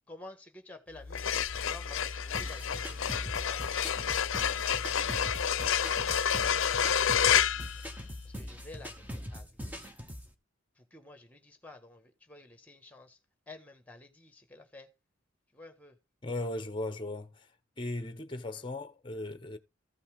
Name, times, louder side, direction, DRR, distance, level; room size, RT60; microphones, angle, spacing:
voice 1, 0.1-7.8 8.2-10.0 10.7-13.2 13.5-14.9 15.5-16.0 18.5-18.6, left 2 dB, 10° left, 1.4 m, -52 dB
sound 1, 1.0-8.5, left 8 dB, 80° left, 0.6 m, -29 dB
sound 2, 2.3-10.3, equal, 10° right, 0.9 m, -43 dB
voice 2, 16.2-17.5 17.8-19.6, left 2 dB, 25° left, 0.8 m, -37 dB
14.5 x 5.5 x 3.5 m
head